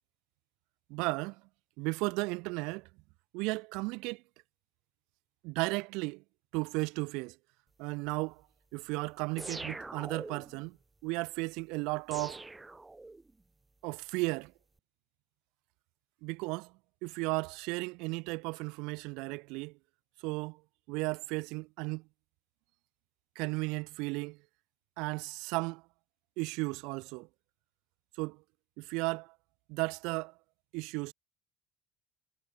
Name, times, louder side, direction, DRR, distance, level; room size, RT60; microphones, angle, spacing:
voice 1, 0.9-1.4 1.8-2.9 3.3-4.2 5.4-6.2 6.5-7.4 7.8-8.4 8.7-10.8 11.0-12.5 13.8-14.5 16.2-16.7 17.0-19.8 20.2-20.6 20.9-22.1 23.3-24.4 25.0-25.8 26.4-27.3 28.2-28.4 28.8-29.3 29.7-30.3 30.7-31.1, right 27 dB, 80° right, 3.0 m, -34 dB
sound 1, 9.4-10.6 12.1-13.4, right 2 dB, 15° right, 5.2 m, -43 dB
hypercardioid pair, 65°, 0 cm